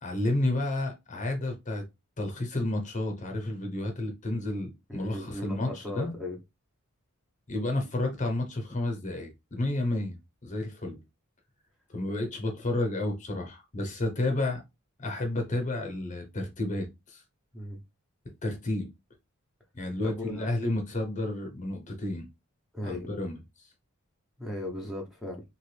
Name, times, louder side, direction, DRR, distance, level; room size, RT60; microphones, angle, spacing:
voice 1, 0.0-1.8 2.2-6.2 7.5-11.0 11.9-14.6 15.0-17.2 18.4-18.9 19.7-22.3 22.8-23.7, left 2 dB, 35° left, 0.8 m, -31 dB
voice 2, 4.9-6.4 17.5-17.8 20.0-20.5 22.7-23.1 24.4-25.4, left 1 dB, ahead, 0.7 m, -37 dB
2.9 x 2.5 x 3.2 m
head